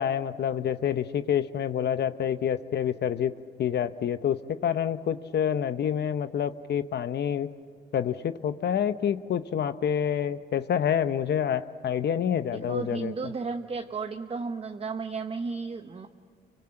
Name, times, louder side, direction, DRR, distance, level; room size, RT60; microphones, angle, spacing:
voice 1, 0.0-3.3 3.6-7.5 7.9-13.1, left 9 dB, 55° left, 12 dB, 0.8 m, -27 dB
voice 2, 12.5-16.1, right 4 dB, 30° right, 6 dB, 1.0 m, -33 dB
28.5 x 24.5 x 7.7 m, 2.1 s
cardioid pair, 90°, 20 cm